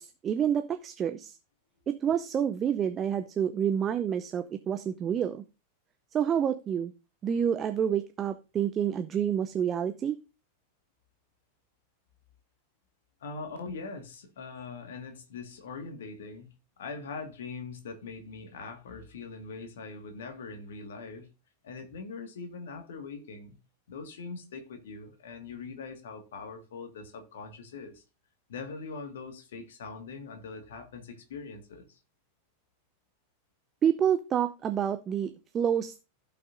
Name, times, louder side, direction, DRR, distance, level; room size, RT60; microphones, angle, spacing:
voice 1, 0.0-1.4 1.9-5.4 6.1-6.9 7.2-10.2 33.8-36.0, right 8 dB, 25° right, 0.6 m, -28 dB
voice 2, 13.2-16.5 16.8-21.3 21.6-23.6 23.9-28.0 28.5-32.0, left 4 dB, 60° left, 1.7 m, -42 dB
15.5 x 5.9 x 2.5 m
figure-of-eight pair, 90°, 0 cm